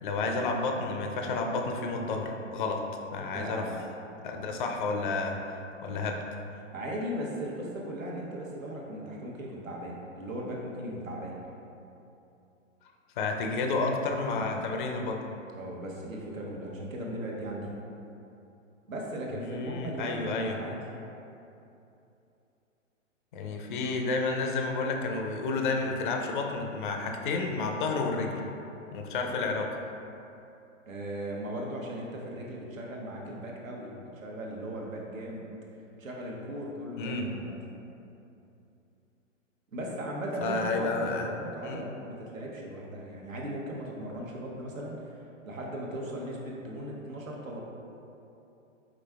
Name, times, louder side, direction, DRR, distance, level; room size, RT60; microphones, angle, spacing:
voice 1, 0.0-2.8 3.1-3.7 4.2-5.4 5.8-6.2 13.2-15.2 19.4-20.6 23.3-28.4 28.9-29.8 37.0-37.3 40.4-41.3 41.6-41.8, left 3 dB, 40° left, 2 dB, 0.4 m, -30 dB
voice 2, 3.3-3.7 5.8-6.0 6.7-11.4 14.3-14.6 15.6-17.7 18.9-20.8 30.9-35.4 36.0-37.6 39.7-45.1 45.5-47.6, right 1 dB, 85° right, -2 dB, 1.0 m, -37 dB
5.1 x 3.7 x 2.2 m, 2.8 s
hypercardioid pair, 125°, 39 cm